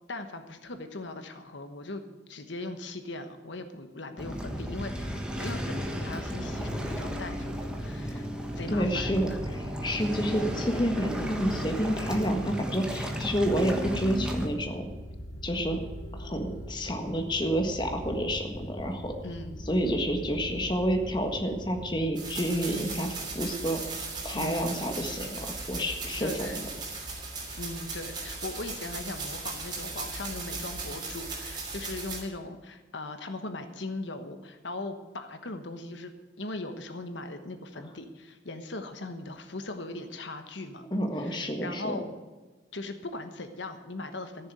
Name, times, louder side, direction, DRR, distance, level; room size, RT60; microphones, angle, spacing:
voice 1, 0.1-2.0 2.3-8.3 8.5-9.4 19.2-19.6 24.3-24.9 26.2-26.6 27.6-40.8 41.1-42.1 42.7-44.5, left 2 dB, 75° left, 8 dB, 1.2 m, -39 dB
Waves surf, 4.2-14.5, equal, 5° right, 1.4 m, -34 dB
sound 1, 4.4-22.1, equal, 40° left, 1.4 m, -41 dB
voice 2, 8.7-14.9 15.4-15.8 16.1-19.1 19.7-25.4 25.7-26.6 40.9-42.0, equal, 25° left, 4 dB, 1.6 m, -29 dB
sound 2, 22.1-32.2, right 3 dB, 25° right, 3.2 m, -37 dB
14.5 x 7.1 x 9.5 m, 1.3 s
head